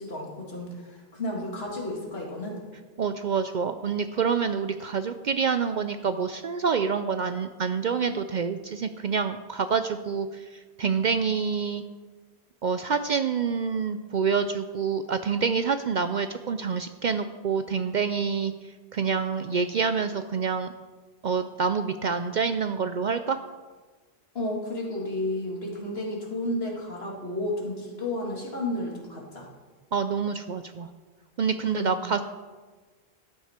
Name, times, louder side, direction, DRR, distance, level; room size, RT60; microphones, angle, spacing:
voice 1, 0.0-2.6 24.3-29.5 31.6-32.0, left 1 dB, 65° left, -1 dB, 2.3 m, -32 dB
voice 2, 3.0-11.8 12.6-20.7 21.2-23.4 29.9-30.9 31.4-32.2, right 6 dB, 55° right, 10 dB, 0.5 m, -27 dB
12.5 x 9.3 x 4.3 m, 1.4 s
omnidirectional pair, 1.1 m